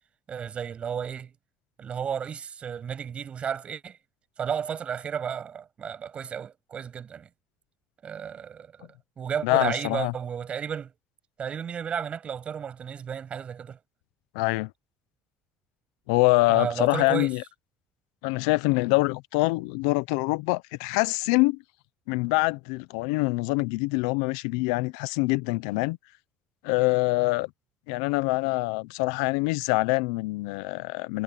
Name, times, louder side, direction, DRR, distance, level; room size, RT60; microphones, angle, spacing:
voice 1, 0.3-1.3 1.8-4.0 4.4-7.3 8.0-8.9 9.2-10.9 11.4-13.8 16.5-17.3, right 7 dB, 40° right, 8.0 m, -33 dB
voice 2, 9.4-10.1 14.3-14.7 16.1-17.4 18.2-21.6 22.1-26.0 26.6-27.5 27.9-31.2, left 24 dB, 85° left, 0.8 m, -25 dB
supercardioid pair, 95°, 3 cm